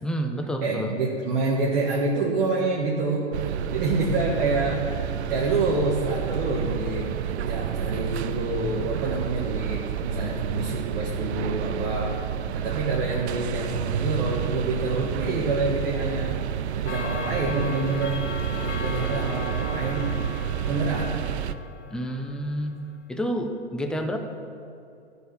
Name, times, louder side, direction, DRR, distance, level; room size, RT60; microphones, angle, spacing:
voice 1, 0.0-1.0 21.9-22.8 23.1-24.2, equal, ahead, 4 dB, 0.5 m, -29 dB
voice 2, 0.6-3.3 3.7-7.1 7.5-12.2 12.5-16.4 16.7-18.2 18.5-20.2 20.7-21.2, right 3 dB, 55° right, -3 dB, 1.7 m, -27 dB
sound 1, 3.3-21.5, right 9 dB, 70° right, 0.5 m, -30 dB
Clock, 16.9-22.8, left 6 dB, 80° left, 1.0 m, -38 dB
14.0 x 4.7 x 7.1 m, 2.7 s
hypercardioid pair, 110°, 35 cm